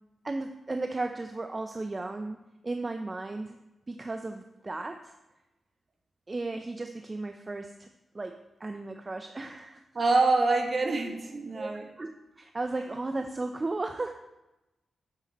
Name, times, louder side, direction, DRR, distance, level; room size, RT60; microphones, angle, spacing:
voice 1, 0.2-3.6 3.9-5.2 6.3-7.9 8.1-9.8 11.5-11.7 12.0-12.1 12.4-14.1, right 2 dB, 35° right, 6 dB, 0.6 m, -35 dB
voice 2, 9.9-11.8, right 3 dB, 50° right, 3 dB, 1.5 m, -25 dB
8.1 x 7.0 x 4.2 m, 0.99 s
supercardioid pair, 50°, 0 cm